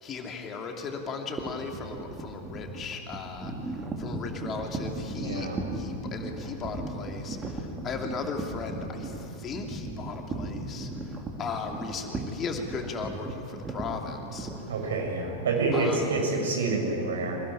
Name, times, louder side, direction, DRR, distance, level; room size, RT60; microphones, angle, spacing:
voice 1, 0.0-14.7 15.7-16.2, left 5 dB, 25° left, 2 dB, 2.8 m, -37 dB
sound 1, 1.4-15.4, right 2 dB, 20° right, 2.8 m, -37 dB
voice 2, 5.2-5.6 14.7-17.4, right 3 dB, 65° right, 2 dB, 6.5 m, -28 dB
26.0 x 20.0 x 9.9 m, 2.9 s
figure-of-eight pair, 90°, 0 cm